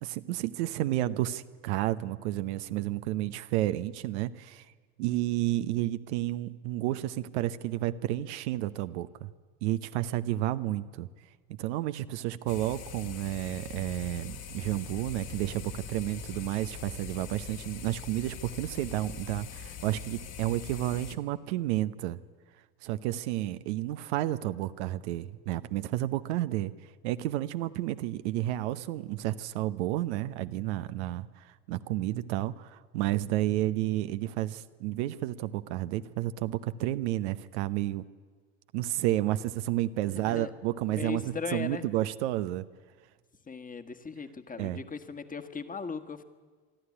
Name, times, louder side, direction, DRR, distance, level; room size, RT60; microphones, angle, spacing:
voice 1, 0.0-4.6 5.0-9.3 9.6-11.1 11.6-22.2 22.8-26.7 27.0-31.3 31.7-38.0 38.7-42.6 44.6-44.8, right 15 dB, 75° right, 12 dB, 0.9 m, -31 dB
sound 1, 12.5-21.2, left 7 dB, 50° left, 2.0 m, -43 dB
voice 2, 40.1-40.5 40.8-41.9 43.5-46.2, left 5 dB, 25° left, 9 dB, 1.7 m, -38 dB
24.0 x 13.0 x 9.9 m, 1.5 s
hypercardioid pair, 75°, 34 cm